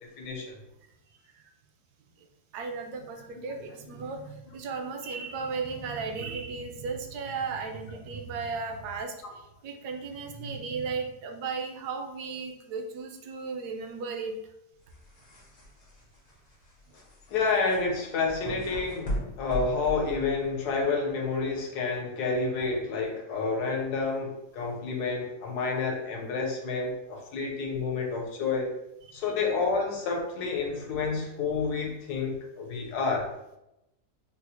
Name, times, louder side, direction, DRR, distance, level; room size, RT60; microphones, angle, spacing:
voice 1, 0.0-0.6 17.3-28.7 29.1-33.3, left 4 dB, 75° left, 1 dB, 1.2 m, -29 dB
voice 2, 2.5-9.1 9.6-14.3, right 4 dB, 75° right, 4 dB, 1.1 m, -35 dB
sound 1, 14.8-20.7, equal, 50° left, 0.5 m, -38 dB
3.9 x 2.0 x 2.9 m, 0.86 s
omnidirectional pair, 1.8 m